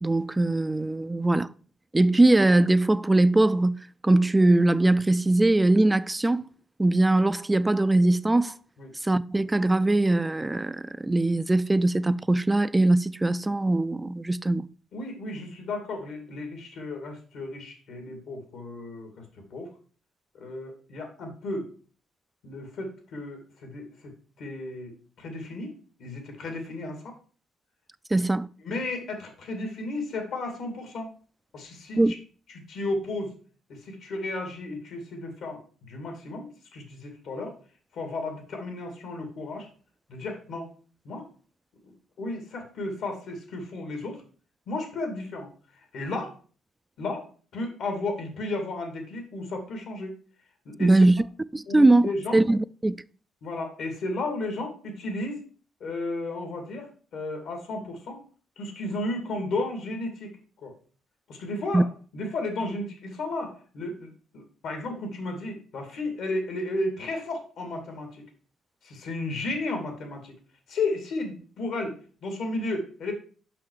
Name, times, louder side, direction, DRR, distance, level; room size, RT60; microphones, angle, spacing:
voice 1, 0.0-1.5 1.9-6.4 6.8-8.5 9.0-14.7 28.1-28.5 32.0-32.2 50.8-51.2 51.5-53.0 61.7-61.8, right 2 dB, 15° right, 0.3 m, -21 dB
voice 2, 14.9-19.2 19.5-19.7 20.3-21.7 22.4-23.9 24.4-25.7 26.0-27.1 28.6-31.1 31.5-32.2 32.5-33.3 33.7-37.5 37.9-39.7 40.1-40.7 41.0-41.3 41.8-41.9 42.2-44.2 44.7-45.5 45.9-46.3 47.0-47.3 47.5-50.1 50.7-50.9 51.7-52.4 53.4-55.4 55.8-58.2 58.6-60.4 60.6-60.7 61.3-61.9 62.1-68.2 68.8-70.3 70.7-73.1, left 2 dB, 75° left, 2.2 m, -33 dB
5.8 x 5.6 x 4.8 m
cardioid pair, 90°, 0 cm